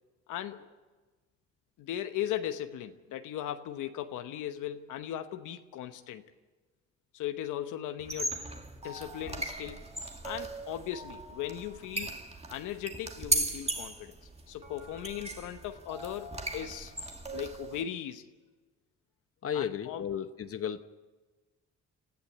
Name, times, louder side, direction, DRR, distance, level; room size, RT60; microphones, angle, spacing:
voice 1, 0.3-0.7 1.8-6.2 7.1-8.4 8.8-9.9 10.2-12.2 12.5-14.1 14.5-16.9 17.3-18.3 19.5-20.0, left 11 dB, 90° left, 8 dB, 1.1 m, -38 dB
sound 1, 8.0-17.8, right 2 dB, 20° right, 2.0 m, -37 dB
voice 2, 19.4-20.8, left 8 dB, 50° left, 10 dB, 0.9 m, -34 dB
27.5 x 14.5 x 8.1 m, 1.3 s
cardioid pair, 90°, 30 cm